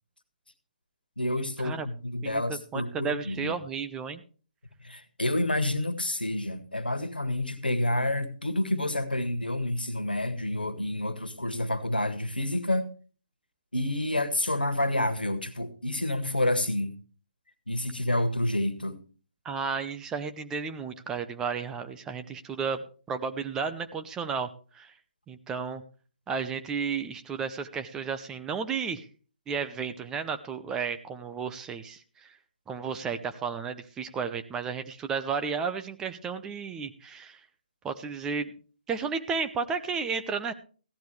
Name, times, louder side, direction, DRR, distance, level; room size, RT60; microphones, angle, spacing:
voice 1, 1.2-3.5 4.8-12.9 13.7-16.9 17.7-19.0, left 1 dB, 90° left, 1.6 m, -29 dB
voice 2, 2.2-4.2 19.4-22.8 23.1-24.9 25.3-25.8 26.3-29.1 29.5-32.3 32.7-37.4 37.8-38.6 38.9-40.5, right 5 dB, 10° right, 0.7 m, -33 dB
15.5 x 11.5 x 3.2 m
figure-of-eight pair, 140°, 5 cm